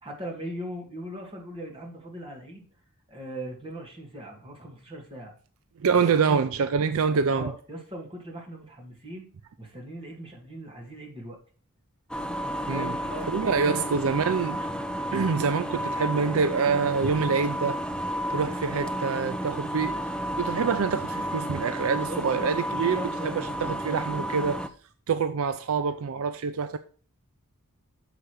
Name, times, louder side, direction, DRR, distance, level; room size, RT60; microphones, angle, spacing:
voice 1, 0.0-2.6 3.1-5.3 5.9-6.5 6.8-6.9 7.3-9.3 9.6-11.4 12.7-14.0 22.1-22.2 22.7-23.8, right 1 dB, 25° right, 2.0 m, -39 dB
voice 2, 5.8-7.5 12.7-12.9 13.3-14.7 15.1-17.8 18.3-19.9 20.4-24.6 25.1-26.8, right 5 dB, 65° right, 0.4 m, -26 dB
sound 1, 12.1-24.7, equal, 5° left, 0.5 m, -32 dB
6.7 x 5.0 x 6.1 m
head